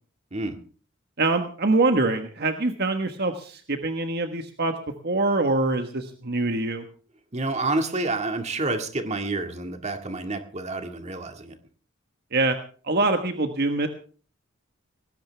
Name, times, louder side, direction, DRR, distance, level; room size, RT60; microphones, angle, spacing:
voice 1, 1.2-4.7 5.0-6.8 12.3-12.6 12.8-13.9, right 2 dB, 50° right, 6 dB, 1.4 m, -24 dB
voice 2, 7.3-11.6, right 2 dB, 30° right, 6 dB, 2.0 m, -29 dB
20.0 x 16.5 x 3.4 m, 0.41 s
head